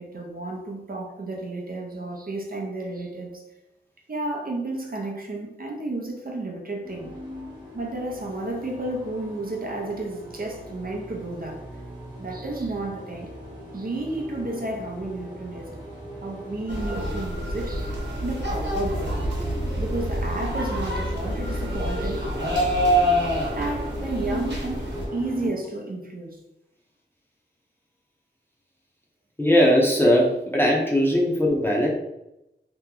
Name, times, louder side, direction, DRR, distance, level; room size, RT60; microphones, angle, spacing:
voice 1, 0.0-3.4 4.1-7.2 7.7-11.7 12.2-13.3 13.7-15.8 16.2-19.2 19.8-22.8 23.5-26.4, right 2 dB, 50° right, 0.6 m, -32 dB
sound 1, 6.8-25.5, equal, 25° right, 1.1 m, -39 dB
sound 2, 16.7-25.1, equal, 70° right, 1.0 m, -27 dB
voice 2, 29.4-31.9, equal, 10° left, 0.7 m, -20 dB
2.9 x 2.1 x 3.7 m
wide cardioid pair, 70°, 18 cm